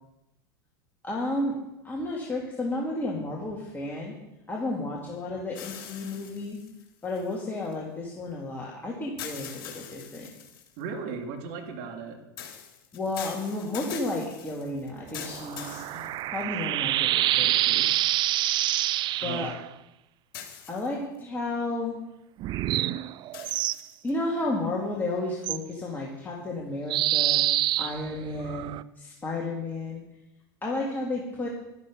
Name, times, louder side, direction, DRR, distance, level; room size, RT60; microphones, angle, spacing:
voice 1, 1.0-1.5 1.8-4.1 4.5-6.6 7.0-10.3 12.9-15.8 16.3-18.0 19.2-19.5 20.7-22.0 24.0-27.4 27.8-30.0 30.6-31.5, left 2 dB, 15° left, -3 dB, 3.1 m, -32 dB
sound 1, 5.5-7.7 9.2-10.8 12.4-16.6 17.3-17.4 20.3-21.2 23.3-24.1, left 9 dB, 60° left, 3.3 m, -43 dB
voice 2, 10.8-12.2 15.8-16.1 19.2-19.5, right 4 dB, 60° right, 3 dB, 2.8 m, -36 dB
sound 2, 15.1-19.6 22.4-23.8 25.4-25.6 26.9-28.8, right 14 dB, 40° right, 0.5 m, -26 dB
13.0 x 12.0 x 5.5 m, 0.92 s
hypercardioid pair, 90°, 12 cm